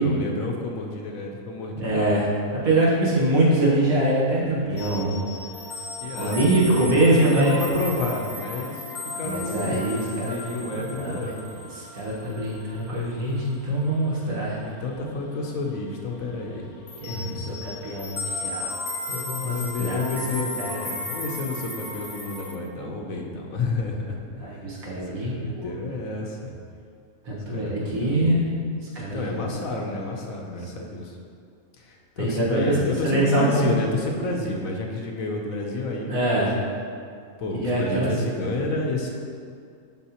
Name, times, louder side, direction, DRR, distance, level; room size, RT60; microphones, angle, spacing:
voice 1, 0.0-1.9 6.0-6.9 7.2-8.8 9.2-9.9 10.3-11.6 14.8-16.8 17.1-17.6 19.4-24.7 25.2-26.5 27.5-28.4 29.1-31.2 31.8-36.4 37.4-39.1, left 2 dB, 70° left, 1 dB, 1.2 m, -30 dB
voice 2, 1.8-2.3 2.6-5.2 6.1-7.6 9.2-11.3 11.7-14.6 17.0-18.7 19.1-20.2 20.6-20.8 24.4-25.9 27.2-28.5 28.9-29.7 32.2-32.7 33.0-33.8 36.1-36.6 37.5-38.1, right 1 dB, 70° right, -6 dB, 1.9 m, -24 dB
sound 1, 4.8-15.2 15.4-15.8 16.1-22.5, left 2 dB, 50° left, 0.8 m, -35 dB
11.0 x 3.8 x 2.9 m, 2.3 s
omnidirectional pair, 1.5 m